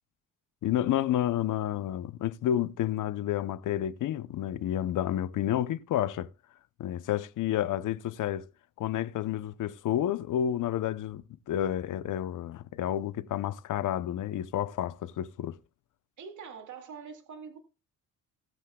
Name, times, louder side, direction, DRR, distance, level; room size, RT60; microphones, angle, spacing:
voice 1, 0.6-6.3 6.8-8.5 8.8-15.6, left 11 dB, 65° left, 0.7 m, -30 dB
voice 2, 16.2-17.6, right 6 dB, 60° right, 2.2 m, -44 dB
19.0 x 7.7 x 2.3 m
cardioid pair, 95°, 33 cm